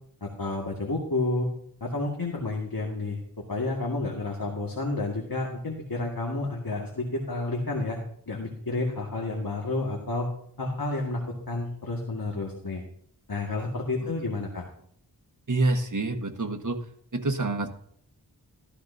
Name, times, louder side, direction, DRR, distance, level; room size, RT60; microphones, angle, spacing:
voice 1, 0.2-1.5 1.8-3.2 3.5-8.0 8.3-10.3 10.6-12.8 13.3-14.6, left 2 dB, 55° left, 0 dB, 1.9 m, -30 dB
voice 2, 15.5-16.8 17.1-17.7, right 2 dB, 45° right, 4 dB, 1.4 m, -27 dB
14.5 x 12.5 x 2.7 m, 0.65 s
wide cardioid pair, 45°, 41 cm